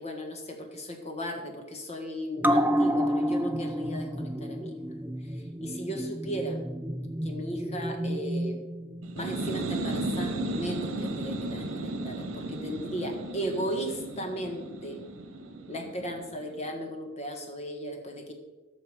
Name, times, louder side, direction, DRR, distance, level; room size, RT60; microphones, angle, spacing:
voice 1, 0.0-4.7 5.6-6.6 7.2-8.6 9.1-15.0 15.7-18.3, equal, 35° left, 4 dB, 1.5 m, -36 dB
sound 1, 2.4-9.3 9.7-9.8, equal, 10° right, 0.4 m, -30 dB
sound 2, 9.0-16.5, right 2 dB, 80° right, 1.1 m, -34 dB
12.5 x 6.3 x 4.9 m, 1.2 s
head